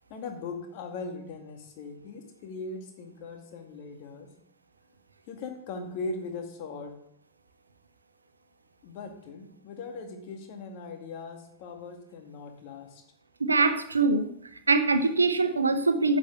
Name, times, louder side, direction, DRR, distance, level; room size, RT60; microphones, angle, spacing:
voice 1, 0.1-4.3 5.3-7.0 8.8-13.0, left 3 dB, 45° left, 4 dB, 2.2 m, -39 dB
voice 2, 13.4-14.3 14.7-16.2, right 3 dB, 80° right, 10 dB, 0.9 m, -23 dB
10.0 x 6.2 x 6.5 m, 0.72 s
figure-of-eight pair, 90°, 0 cm